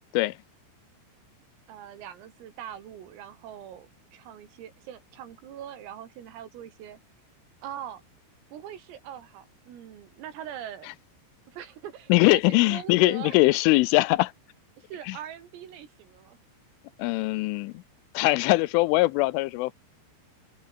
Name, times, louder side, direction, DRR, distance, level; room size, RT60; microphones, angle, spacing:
voice 1, 1.7-7.0 7.6-8.0 8.5-10.9 11.5-13.4 14.8-16.4, right 10 dB, 85° right, 5.7 m, -42 dB
voice 2, 12.1-14.3 15.1-15.2 17.0-17.7 18.1-19.7, left 21 dB, 85° left, 3.0 m, -21 dB
omnidirectional pair, 5.8 m